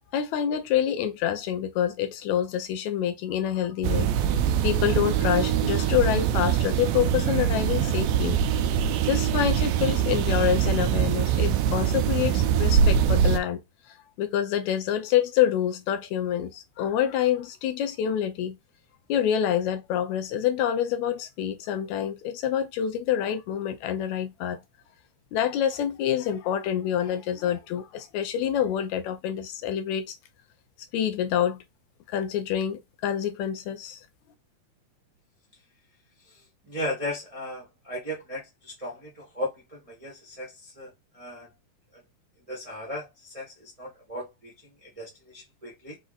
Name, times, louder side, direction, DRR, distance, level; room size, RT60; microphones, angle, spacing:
voice 1, 0.1-4.1 4.6-8.4 9.0-13.6 14.2-18.6 19.1-24.6 25.3-30.2 30.9-31.6 32.1-34.0, left 10 dB, 75° left, 1.9 m, -27 dB
sound 1, 3.8-13.4, right 8 dB, 80° right, 1.8 m, -23 dB
voice 2, 36.3-41.5 41.9-42.0 42.5-46.0, left 1 dB, 40° right, 0.5 m, -37 dB
5.3 x 2.4 x 3.9 m
omnidirectional pair, 3.5 m